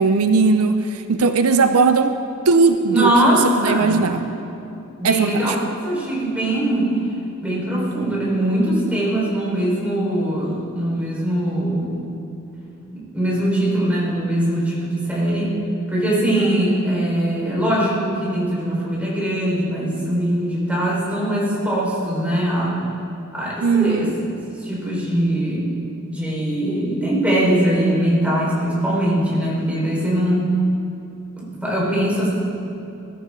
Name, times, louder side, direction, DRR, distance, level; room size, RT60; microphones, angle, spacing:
voice 1, 0.0-2.1 2.5-4.2 5.0-5.6 23.6-24.1, right 4 dB, 75° right, 9 dB, 0.6 m, -18 dB
voice 2, 2.9-4.0 5.0-5.5 5.8-7.0 7.4-12.0 12.9-15.5 15.9-22.8 23.3-24.1 24.6-25.7 26.1-30.4 31.3-32.3, right 1 dB, 5° right, -6 dB, 4.5 m, -21 dB
21.5 x 13.5 x 3.8 m, 2.8 s
head